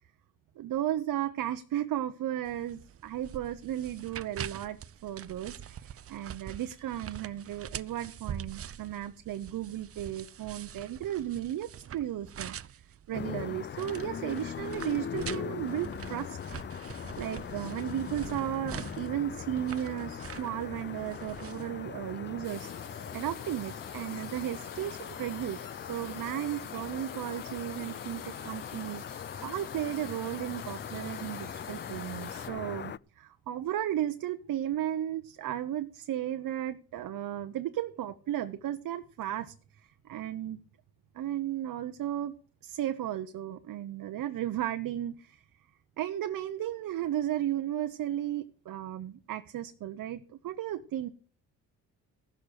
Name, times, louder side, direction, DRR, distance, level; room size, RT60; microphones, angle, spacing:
voice 1, 0.6-12.8 13.1-16.4 17.2-25.6 25.9-40.6 41.1-42.3 42.6-45.4 46.0-51.1, right 12 dB, 70° right, 8 dB, 0.9 m, -35 dB
sound 1, 2.4-21.7, right 9 dB, 40° right, 0.6 m, -45 dB
sound 2, 13.1-33.0, left 8 dB, 35° left, 0.5 m, -40 dB
sound 3, 22.4-32.5, left 6 dB, 65° left, 2.6 m, -48 dB
15.5 x 6.5 x 6.6 m, 0.43 s
supercardioid pair, 70°, 35 cm